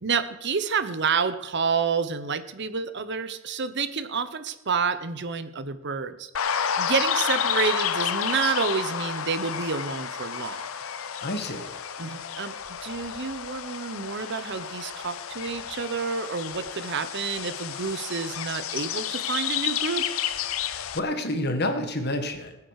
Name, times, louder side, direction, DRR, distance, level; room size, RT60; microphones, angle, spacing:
voice 1, 0.0-10.7 12.0-20.0, right 5 dB, 55° right, 11 dB, 0.9 m, -29 dB
sound 1, 6.3-21.0, left 8 dB, 80° left, 0.7 m, -31 dB
voice 2, 11.2-11.7 20.7-22.6, left 1 dB, 50° left, 6 dB, 1.6 m, -29 dB
19.5 x 8.6 x 4.8 m, 0.93 s
head